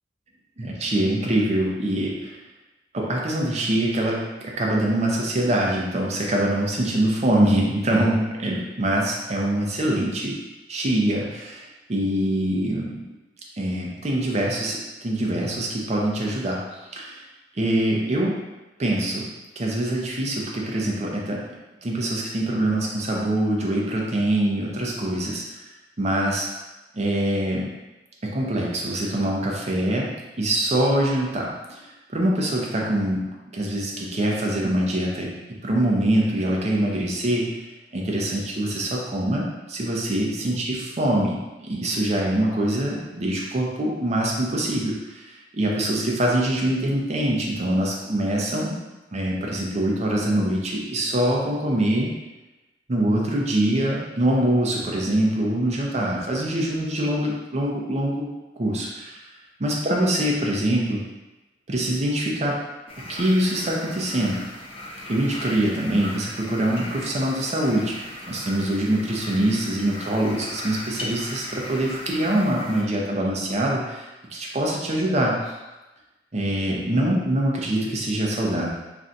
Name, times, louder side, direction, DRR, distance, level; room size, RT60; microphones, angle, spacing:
voice 1, 0.8-2.4 2.9-10.4 10.7-13.0 13.6-17.2 17.5-18.4 18.8-21.4 21.8-25.5 26.0-26.5 26.9-27.7 28.2-31.8 32.1-33.3 33.5-37.6 37.9-48.8 49.1-52.1 52.9-58.3 58.6-59.3 59.6-61.1 61.7-62.6 63.1-64.4 65.1-75.6 76.3-78.7, right 1 dB, 35° right, -2 dB, 0.6 m, -24 dB
sound 1, 62.9-72.8, left 1 dB, 30° left, 0.4 m, -38 dB
2.5 x 2.3 x 3.9 m, 1.1 s
head